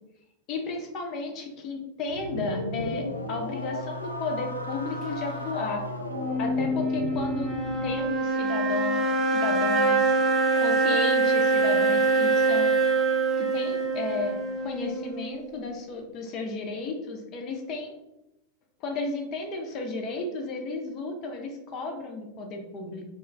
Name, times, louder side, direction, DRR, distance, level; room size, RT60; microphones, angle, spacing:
voice 1, 0.5-5.8 6.4-7.5 7.8-10.2 10.6-12.8 13.4-18.0 18.8-23.0, left 3 dB, 35° left, 3 dB, 0.6 m, -33 dB
sound 1, 2.1-8.0, left 1 dB, 85° left, 0.4 m, -34 dB
sound 2, 6.1-15.5, right 3 dB, 5° right, 0.7 m, -24 dB
2.9 x 2.3 x 3.3 m, 0.91 s
figure-of-eight pair, 90°, 0 cm